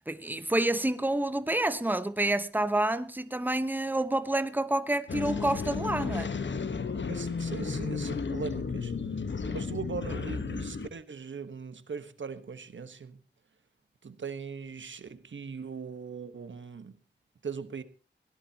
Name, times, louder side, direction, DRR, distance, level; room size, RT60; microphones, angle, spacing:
voice 1, 0.1-6.3, right 1 dB, 10° right, 1.0 m, -28 dB
sound 1, 5.1-10.9, left 5 dB, 70° left, 1.2 m, -33 dB
voice 2, 7.1-9.1 9.5-13.2 14.0-17.0 17.4-17.8, right 5 dB, 80° right, 1.3 m, -40 dB
21.5 x 17.5 x 2.9 m
wide cardioid pair, 85°, 19 cm